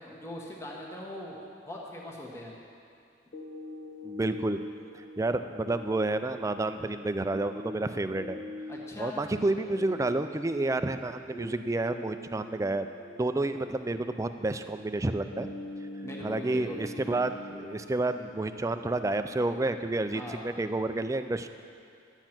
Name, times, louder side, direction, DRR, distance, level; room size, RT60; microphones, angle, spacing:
voice 1, 0.0-1.4 1.6-2.5 8.7-9.2 16.0-17.0 20.1-20.4, left 1 dB, 15° left, -3 dB, 1.3 m, -41 dB
sound 1, 3.3-19.3, left 1 dB, 45° left, 1.2 m, -44 dB
voice 2, 4.0-4.6 4.9-8.4 9.0-12.9 13.2-15.5 16.2-21.5, right 2 dB, 15° right, 9 dB, 0.3 m, -30 dB
12.0 x 8.9 x 5.9 m, 2.4 s
head